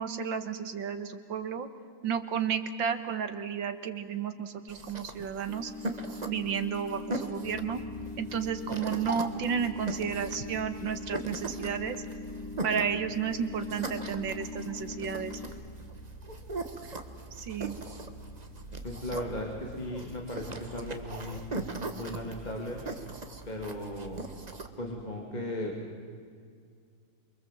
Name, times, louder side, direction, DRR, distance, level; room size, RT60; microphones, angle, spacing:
voice 1, 0.0-1.7 2.0-5.7 6.3-7.8 8.2-12.0 12.6-15.4 17.4-17.8, right 7 dB, 75° right, 9 dB, 2.1 m, -32 dB
sound 1, 4.7-24.7, right 2 dB, 25° right, 1.4 m, -40 dB
sound 2, 5.5-15.5, left 4 dB, 5° left, 2.8 m, -42 dB
sound 3, 7.4-21.4, equal, 40° left, 6.4 m, -49 dB
voice 2, 18.8-21.4 21.9-22.8 23.5-24.3 24.8-25.8, left 1 dB, 20° left, -1 dB, 2.9 m, -36 dB
28.0 x 24.0 x 7.7 m, 2.1 s
omnidirectional pair, 2.1 m